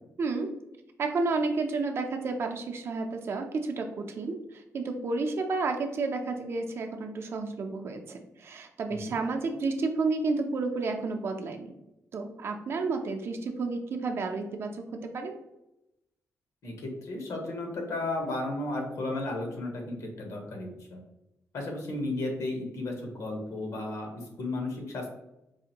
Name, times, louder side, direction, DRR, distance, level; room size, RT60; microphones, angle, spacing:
voice 1, 0.2-0.5 1.0-11.7 12.1-15.3, right 3 dB, 50° right, 4 dB, 0.5 m, -31 dB
voice 2, 16.6-21.0 21.5-25.1, left 2 dB, 75° left, 2 dB, 1.0 m, -34 dB
4.7 x 2.5 x 2.8 m, 0.88 s
wide cardioid pair, 155°, 5 cm